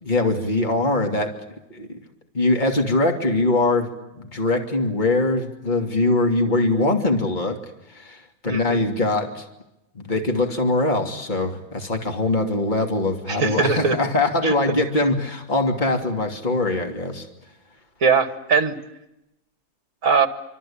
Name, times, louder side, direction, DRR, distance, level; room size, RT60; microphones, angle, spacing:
voice 1, 0.0-1.3 1.7-2.0 2.3-7.6 7.9-9.4 9.9-17.3, left 2 dB, 30° left, 3 dB, 2.9 m, -22 dB
voice 2, 8.5-8.8 13.3-14.0 14.4-14.5 18.0-18.8 20.0-20.3, right 5 dB, 60° right, 10 dB, 2.4 m, -20 dB
26.0 x 25.5 x 8.8 m, 0.90 s
omnidirectional pair, 1.6 m